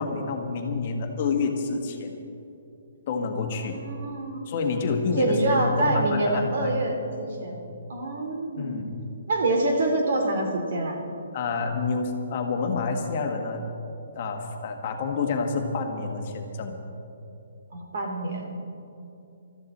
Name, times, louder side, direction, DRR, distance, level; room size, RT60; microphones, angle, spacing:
voice 1, 0.0-2.2 3.1-3.8 4.5-6.7 7.5-7.7 8.6-8.9 11.3-13.6 14.1-16.7, left 4 dB, 30° left, 3 dB, 1.5 m, -28 dB
voice 2, 3.6-4.4 5.2-7.6 7.9-8.8 9.3-11.0 17.7-18.6, right 2 dB, 50° right, 3 dB, 2.5 m, -26 dB
21.0 x 13.5 x 4.2 m, 2.7 s
hypercardioid pair, 175°, 0 cm